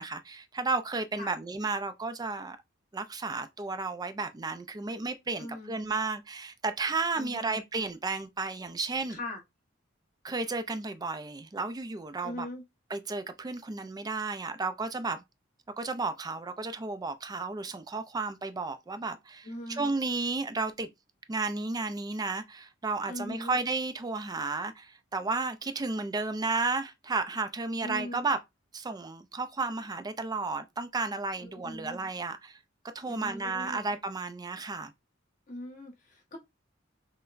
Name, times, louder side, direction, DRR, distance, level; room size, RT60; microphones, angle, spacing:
voice 1, 0.0-2.6 2.9-9.2 10.2-12.5 12.9-15.2 15.8-20.9 21.3-28.4 28.7-32.6 32.9-34.9, right 3 dB, 20° right, 0.4 m, -33 dB
voice 2, 5.4-5.8 7.1-7.6 9.1-9.4 12.2-12.6 19.4-19.9 23.1-23.6 27.8-28.2 31.4-32.0 33.1-33.8 35.5-36.4, left 1 dB, 40° left, 1.1 m, -40 dB
5.6 x 2.1 x 2.5 m
head